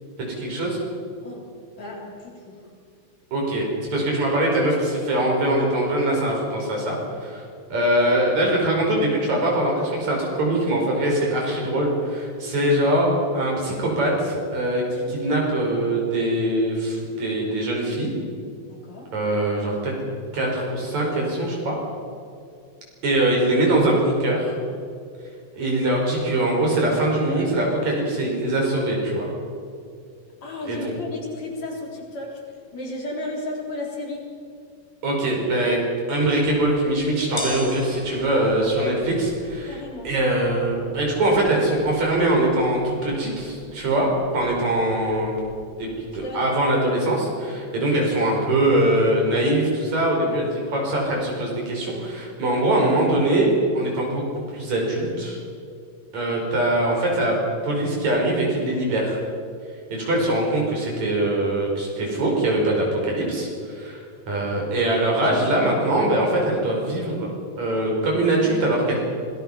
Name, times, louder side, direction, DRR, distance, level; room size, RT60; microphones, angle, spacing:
voice 1, 0.2-0.8 3.3-3.6 3.9-7.4 7.7-18.1 19.1-19.9 20.3-21.8 23.0-24.5 25.5-29.3 30.7-30.9 35.0-35.8 36.1-45.4 45.8-45.9 46.1-55.4 56.1-57.4 57.6-59.2 59.9-67.3 67.6-69.0, right 1 dB, 70° right, -1 dB, 6.5 m, -22 dB
voice 2, 1.8-2.6 12.6-12.7 18.7-19.1 30.4-32.4 32.7-34.3 38.8-38.9 39.7-40.1 46.2-46.6 59.9-60.0 62.0-62.4, left 2 dB, 65° left, -2 dB, 5.2 m, -34 dB
sound 1, 36.2-46.3, left 1 dB, 20° left, 2.9 m, -41 dB
26.0 x 19.0 x 5.8 m, 2.4 s
omnidirectional pair, 3.3 m